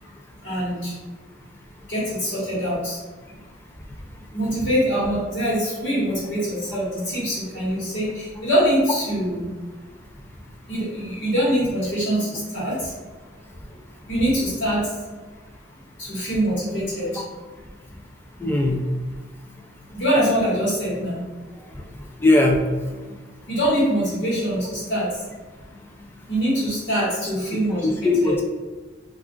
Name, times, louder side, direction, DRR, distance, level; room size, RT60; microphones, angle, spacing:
voice 1, 0.4-0.9 1.9-3.0 4.3-9.5 10.7-12.9 14.1-14.8 16.0-17.2 19.9-21.2 23.5-25.1 26.3-28.3, equal, 75° left, -9 dB, 1.2 m, -23 dB
voice 2, 18.4-18.8 21.7-21.8 22.2-22.6 27.8-28.4, left 2 dB, 10° left, 0 dB, 0.3 m, -19 dB
2.4 x 2.3 x 3.6 m, 1.3 s
head